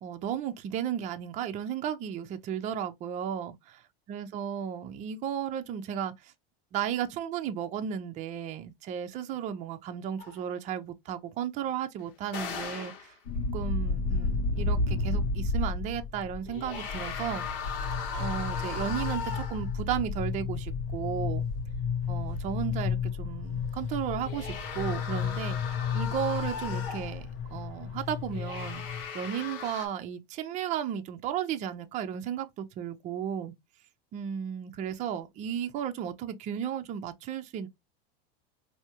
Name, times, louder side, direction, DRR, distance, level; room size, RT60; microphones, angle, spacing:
voice 1, 0.0-3.5 4.1-6.3 6.7-13.1 13.5-17.4 18.2-21.4 22.1-28.8 29.1-33.5 34.1-37.7, right 9 dB, 25° right, 0.5 m, -34 dB
sound 1, 10.2-10.4 12.3-13.1 16.5-19.8 24.1-27.2 28.3-29.9, left 6 dB, 70° left, 1.4 m, -38 dB
sound 2, 13.2-29.1, left 4 dB, 90° left, 1.3 m, -32 dB
4.6 x 2.7 x 2.8 m
supercardioid pair, 160°, 29 cm